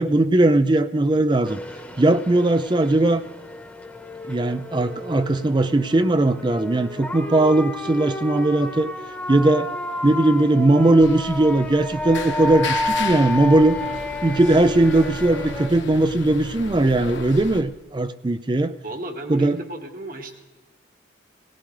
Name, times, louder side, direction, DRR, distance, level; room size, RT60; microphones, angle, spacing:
voice 1, 0.0-1.6 2.0-3.2 4.3-8.9 9.3-9.7 10.0-13.8 14.2-18.7 19.3-19.6, right 2 dB, 25° right, 12 dB, 0.4 m, -19 dB
sound 1, 1.4-15.7, left 1 dB, 5° left, 1.2 m, -31 dB
sound 2, 11.0-17.6, left 3 dB, 70° left, 1.4 m, -34 dB
voice 2, 18.8-20.3, right 1 dB, 45° right, 4 dB, 1.6 m, -33 dB
18.5 x 17.0 x 3.2 m, 1.2 s
head